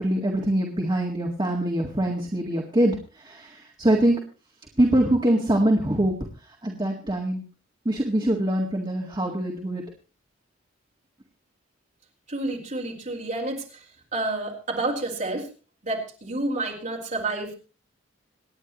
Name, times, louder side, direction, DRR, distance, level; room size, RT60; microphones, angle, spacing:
voice 1, 0.0-4.2 4.8-6.2 6.6-7.4 7.9-9.8, right 1 dB, 20° right, 0 dB, 1.8 m, -23 dB
voice 2, 12.3-13.8 14.1-15.5 15.8-17.5, right 2 dB, 40° right, 0 dB, 4.6 m, -29 dB
27.0 x 9.9 x 3.0 m, 0.34 s
head